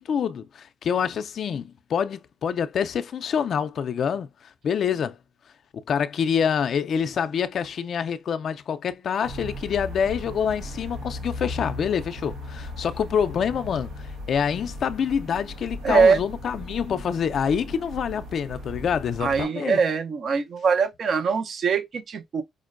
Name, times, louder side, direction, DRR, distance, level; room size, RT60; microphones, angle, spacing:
voice 1, 0.0-4.3 4.6-5.2 5.9-19.8, left 7 dB, 60° left, 0.4 m, -26 dB
sound 1, 9.2-19.4, left 1 dB, 85° right, 0.9 m, -37 dB
voice 2, 15.8-16.2 19.2-22.4, right 5 dB, 55° right, 0.6 m, -22 dB
5.1 x 2.1 x 2.4 m
cardioid pair, 90°, 0 cm